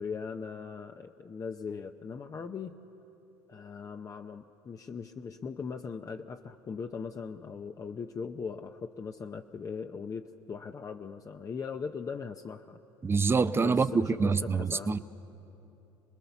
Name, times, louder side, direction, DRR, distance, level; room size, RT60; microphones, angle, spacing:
voice 1, 0.0-2.8 3.5-12.8 13.6-15.0, left 5 dB, 30° left, 5 dB, 0.8 m, -39 dB
voice 2, 13.0-15.0, right 4 dB, 20° right, 13 dB, 0.7 m, -26 dB
28.0 x 20.0 x 7.0 m, 3.0 s
supercardioid pair, 85°, 11 cm